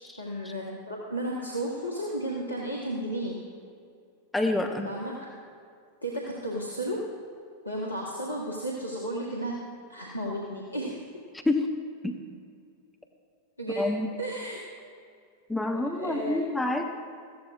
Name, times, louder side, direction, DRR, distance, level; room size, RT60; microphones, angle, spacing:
voice 1, 0.2-3.4 4.8-5.2 6.0-7.1 7.6-11.0 13.6-13.9 14.1-14.6 16.0-16.4, right 1 dB, 85° left, -3 dB, 1.2 m, -33 dB
voice 2, 4.3-4.9 11.4-11.7 12.0-12.2 13.8-14.1 15.5-16.9, left 2 dB, 5° left, 4 dB, 0.8 m, -27 dB
15.0 x 12.0 x 2.4 m, 2.3 s
figure-of-eight pair, 90°, 0 cm